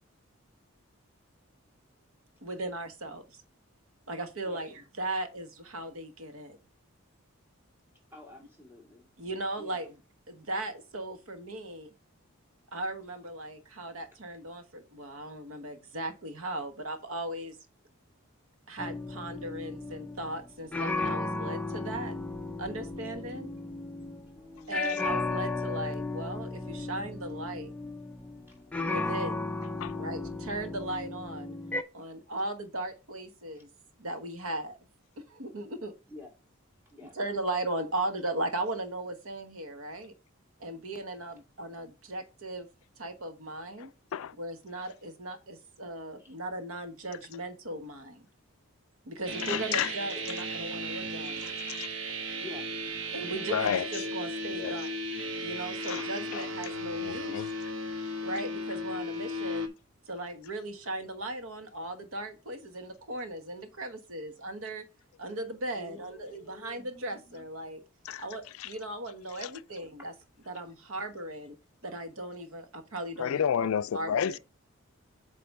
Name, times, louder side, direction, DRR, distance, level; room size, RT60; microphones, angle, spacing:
voice 1, 2.4-3.4 4.1-6.6 9.2-10.0 10.3-11.9 12.7-17.6 18.7-22.1 22.6-23.5 24.7-27.7 28.8-29.5 30.0-31.6 31.9-33.7 34.0-34.8 35.2-35.9 37.0-40.1 40.6-42.7 43.0-43.9 44.4-48.3 49.1-51.5 53.1-55.0 55.4-57.4 58.2-59.7 60.1-64.8 65.2-67.8 68.2-70.1 70.5-71.6 71.8-73.5 73.9-74.4, right 1 dB, 75° right, 1.1 m, -37 dB
voice 2, 8.1-9.1 9.6-9.9 24.3-24.9 28.5-28.6 33.5-33.6 36.1-36.3 36.9-37.2 46.2-46.3 50.2-50.3 52.4-52.6 53.2-53.4 65.7-67.4, left 3 dB, 10° right, 2.2 m, -50 dB
sound 1, 18.8-24.4 24.7-31.8, left 3 dB, 5° left, 0.4 m, -35 dB
sound 2, 49.2-59.7, equal, 60° right, 1.0 m, -35 dB
voice 3, 49.4-49.9 51.4-51.9 53.5-53.9 54.6-54.8 55.9-56.0 56.3-56.4 57.0-57.5 68.1-68.2 68.6-68.7 69.4-69.5 73.2-74.4, left 8 dB, 75° left, 0.3 m, -31 dB
8.0 x 3.0 x 5.2 m
head